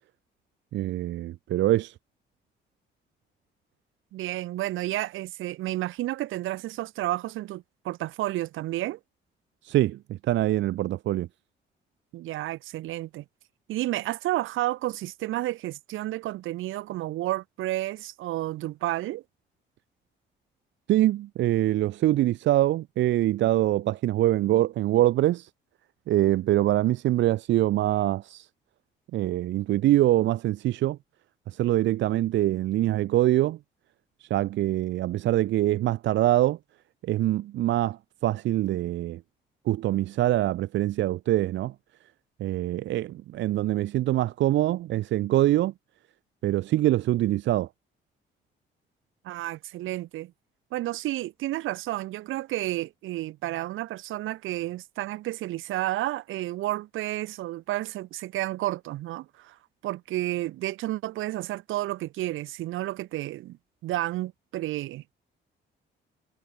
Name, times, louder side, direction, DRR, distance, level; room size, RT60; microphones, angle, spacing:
voice 1, 0.7-1.9 9.6-11.3 20.9-25.5 26.1-28.5 29.1-31.0 31.5-33.6 34.2-36.6 37.0-39.2 39.7-41.7 42.4-45.7 46.4-47.7, right 14 dB, 70° right, 0.5 m, -24 dB
voice 2, 4.1-9.0 12.1-13.2 13.7-19.2 49.2-50.3 50.7-59.6 59.8-63.6 63.8-65.1, right 16 dB, 85° right, 1.2 m, -31 dB
cardioid pair, 90°, 20 cm